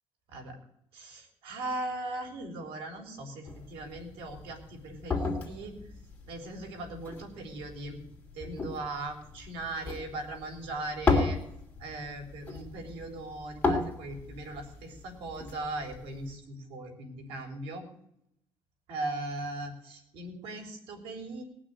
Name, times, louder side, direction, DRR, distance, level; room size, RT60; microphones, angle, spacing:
voice 1, 0.9-5.8 6.3-8.0 8.3-11.4 11.8-17.9 18.9-21.4, right 2 dB, 85° right, 3 dB, 4.0 m, -39 dB
sound 1, 3.5-16.4, left 3 dB, 15° left, 2.8 m, -35 dB
18.5 x 6.2 x 9.5 m, 0.75 s
cardioid pair, 150°, 9 cm